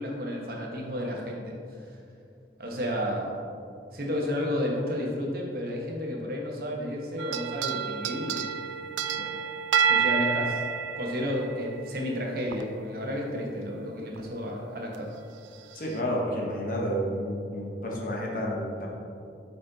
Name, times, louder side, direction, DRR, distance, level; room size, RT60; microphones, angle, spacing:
voice 1, 0.0-1.5 1.8-1.9 2.6-3.4 3.9-8.5 9.1-9.4 9.8-10.6 11.0-15.1, equal, 55° right, -1 dB, 1.1 m, -32 dB
sound 1, 7.2-12.0 12.5-12.6 14.2-14.3 14.9-15.0 15.7-16.0, right 7 dB, 90° right, 0.4 m, -29 dB
voice 2, 15.7-18.9, equal, 50° left, -2 dB, 1.1 m, -30 dB
8.4 x 4.2 x 3.9 m, 2.5 s
head